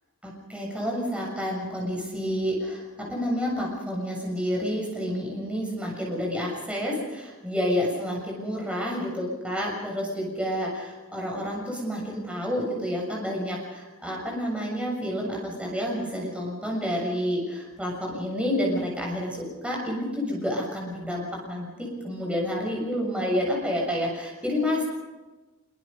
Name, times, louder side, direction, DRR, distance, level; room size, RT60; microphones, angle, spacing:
voice 1, 0.2-24.8, equal, 5° right, -2 dB, 7.2 m, -29 dB
25.5 x 24.0 x 5.4 m, 1.2 s
head